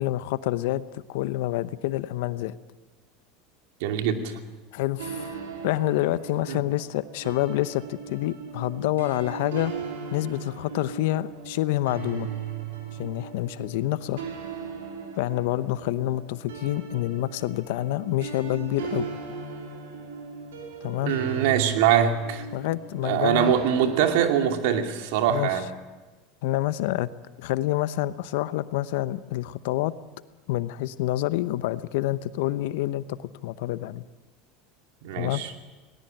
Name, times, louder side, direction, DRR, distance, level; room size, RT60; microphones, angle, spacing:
voice 1, 0.0-2.6 4.7-9.7 10.1-12.3 13.0-14.2 15.2-19.1 20.8-21.1 22.5-23.5 25.3-25.5 26.4-27.1 27.4-29.9 30.5-34.0 35.1-35.4, left 16 dB, 70° left, 16 dB, 0.8 m, -27 dB
voice 2, 3.8-4.4 6.5-6.6 21.0-22.4 23.0-25.7 35.0-35.5, right 9 dB, 70° right, 5 dB, 2.5 m, -23 dB
sound 1, 5.0-24.5, right 7 dB, 85° right, 4.5 m, -38 dB
19.5 x 19.0 x 9.1 m, 1.2 s
hypercardioid pair, 95°, 0 cm